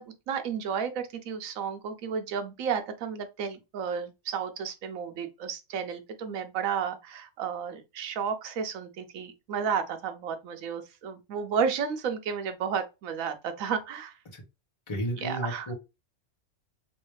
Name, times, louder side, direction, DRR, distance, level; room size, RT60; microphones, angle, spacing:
voice 1, 0.0-14.1 15.1-15.7, right 7 dB, 85° right, 1.1 m, -32 dB
voice 2, 14.9-15.7, equal, 25° left, 1.1 m, -32 dB
3.2 x 3.1 x 3.1 m
omnidirectional pair, 1.4 m